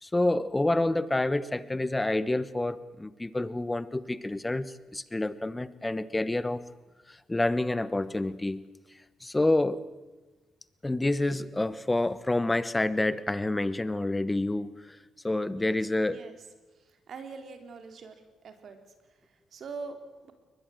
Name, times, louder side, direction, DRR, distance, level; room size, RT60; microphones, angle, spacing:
voice 1, 0.0-6.6 7.1-8.6 9.2-9.8 10.8-15.0 15.2-16.2, left 2 dB, 15° left, 15 dB, 1.2 m, -28 dB
voice 2, 17.1-18.1 18.4-18.8 19.5-20.0, right 4 dB, 55° right, 7 dB, 3.4 m, -42 dB
22.5 x 20.0 x 7.9 m, 1.2 s
cardioid pair, 90°, 0 cm